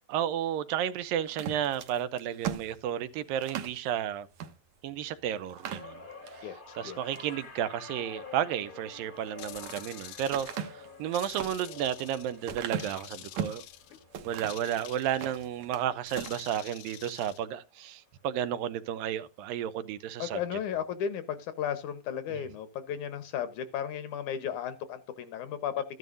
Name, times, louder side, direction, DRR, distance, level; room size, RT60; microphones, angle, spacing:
voice 1, 0.1-4.3 4.8-6.0 6.3-6.5 6.8-13.6 14.2-20.4, right 10 dB, 85° right, 2.5 m, -32 dB
sound 1, 1.3-3.8 4.3-4.5 4.9-5.0 5.5-6.4 6.9-7.3 9.1-9.9 10.3-13.7 14.1-14.7 15.1-15.8 16.1-16.4, right 8 dB, 65° right, 2.2 m, -38 dB
sound 2, 5.6-16.0 16.3-16.7 17.9-18.0, left 4 dB, 30° left, 0.8 m, -49 dB
voice 2, 6.4-7.0 20.2-25.8, left 9 dB, 70° left, 2.1 m, -34 dB
sound 3, 9.4-10.7 11.1-12.4 12.8-14.0 14.5-15.4 16.1-17.4, left 14 dB, 85° left, 2.6 m, -47 dB
14.0 x 11.0 x 2.5 m
omnidirectional pair, 4.1 m